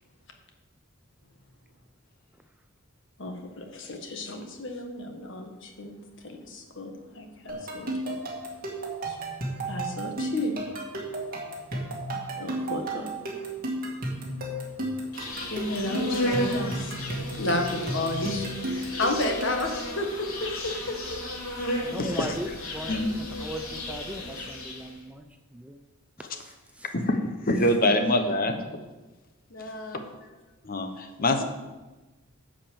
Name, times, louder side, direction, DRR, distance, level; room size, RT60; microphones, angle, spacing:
voice 1, 3.2-5.9 6.2-8.2 9.0-9.2 9.7-10.6 12.4-13.1 13.6-13.7 14.1-14.4 15.2-21.2 29.5-30.0, left 1 dB, 55° left, 3 dB, 1.5 m, -33 dB
sound 1, 7.5-19.8, right 1 dB, 40° right, 2.2 m, -33 dB
Insect, 15.1-25.0, left 1 dB, 80° left, 2.6 m, -34 dB
voice 2, 21.8-25.3 25.5-25.8 26.2-26.9, equal, 5° right, 6 dB, 0.4 m, -38 dB
voice 3, 27.5-28.6 30.6-31.4, left 1 dB, 40° left, 6 dB, 1.0 m, -24 dB
10.0 x 5.1 x 7.4 m, 1.2 s
head